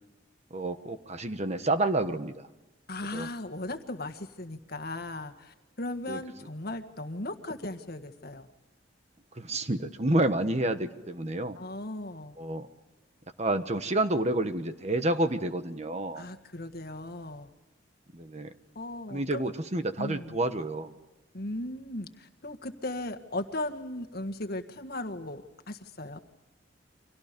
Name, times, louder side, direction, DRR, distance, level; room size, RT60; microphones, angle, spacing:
voice 1, 0.5-2.5 3.1-3.3 6.1-6.2 9.4-11.6 12.4-12.7 13.4-16.3 18.1-18.5 19.1-20.9, right 1 dB, 35° right, 9 dB, 1.3 m, -29 dB
voice 2, 2.9-8.5 11.6-12.4 16.2-17.5 18.8-19.5 20.0-20.4 21.3-26.2, left 1 dB, 55° left, 8 dB, 1.7 m, -37 dB
30.0 x 25.0 x 5.3 m, 1.1 s
head